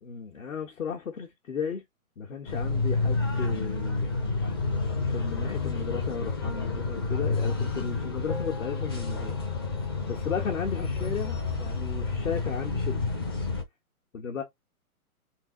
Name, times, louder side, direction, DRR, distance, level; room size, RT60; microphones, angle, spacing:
voice 1, 0.0-1.8 2.2-4.1 5.0-9.4 10.1-13.1 14.1-14.4, left 6 dB, 60° left, 1.3 m, -35 dB
sound 1, 2.4-13.6, left 3 dB, 15° left, 0.5 m, -29 dB
3.9 x 2.8 x 3.7 m
figure-of-eight pair, 140°, 44 cm